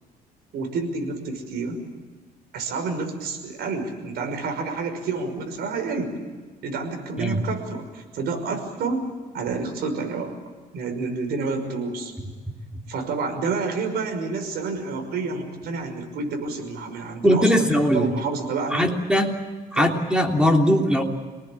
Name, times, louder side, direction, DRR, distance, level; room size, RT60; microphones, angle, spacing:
voice 1, 0.5-1.8 2.5-6.1 6.6-9.0 9.3-10.3 10.7-12.1 12.9-18.9 19.7-19.9, right 4 dB, 70° right, 5 dB, 5.9 m, -29 dB
voice 2, 17.2-18.1 18.7-19.3 19.7-21.0, equal, 5° right, 2 dB, 3.3 m, -20 dB
28.5 x 19.5 x 8.7 m, 1.4 s
cardioid pair, 110°, 17 cm